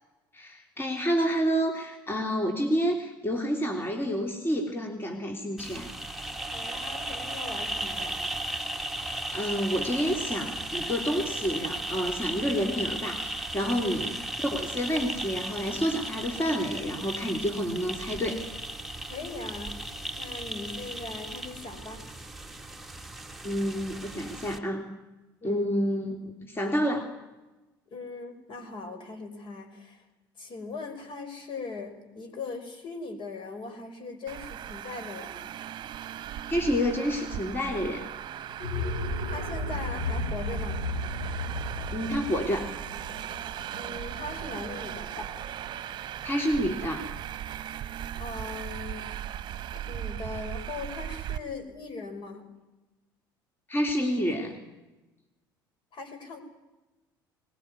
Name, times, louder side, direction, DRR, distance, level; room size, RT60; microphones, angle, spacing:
voice 1, 0.3-5.9 9.1-14.2 14.4-18.4 23.4-24.9 25.4-26.2 26.4-27.1 36.5-38.1 41.9-42.7 46.2-47.1 53.7-54.6, equal, 20° left, 4 dB, 3.2 m, -29 dB
sound 1, 5.6-24.6, right 1 dB, ahead, 1.9 m, -36 dB
voice 2, 6.5-8.2 13.8-14.0 19.1-19.8 20.1-22.0 25.4-25.7 27.9-30.1 30.4-35.4 39.3-40.9 43.7-45.2 48.2-49.1 49.9-52.4 55.9-56.4, left 3 dB, 45° left, 8 dB, 5.0 m, -39 dB
Traffic noise roadway noise, 34.3-51.4, right 11 dB, 40° right, 1.2 m, -38 dB
sound 2, 38.5-44.9, left 2 dB, 75° left, 4.0 m, -34 dB
22.5 x 19.5 x 9.6 m, 1.1 s
figure-of-eight pair, 60°, 12 cm